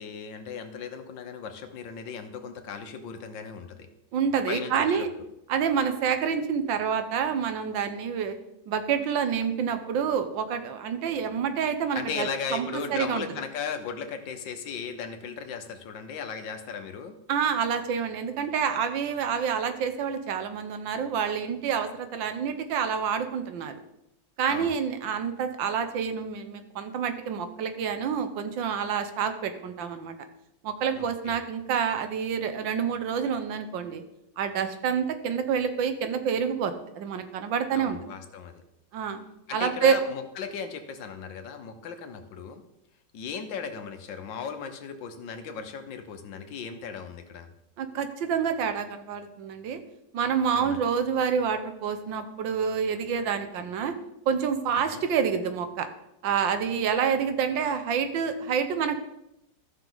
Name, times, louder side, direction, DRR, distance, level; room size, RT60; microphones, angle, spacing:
voice 1, 0.0-3.9 4.5-5.2 11.9-17.1 24.5-24.7 31.0-31.4 37.7-38.6 39.5-42.6 43.1-47.5 50.5-50.8 54.9-55.1, left 6 dB, 80° left, 7 dB, 1.7 m, -37 dB
voice 2, 4.1-5.1 5.5-8.4 8.7-13.2 17.3-23.8 24.4-30.2 30.6-34.0 34.4-38.0 38.9-39.2 39.5-40.0 47.8-49.8 50.1-54.0 54.3-55.9 56.2-59.0, right 7 dB, 85° right, 9 dB, 1.6 m, -28 dB
14.5 x 6.1 x 3.9 m, 0.85 s
omnidirectional pair, 2.0 m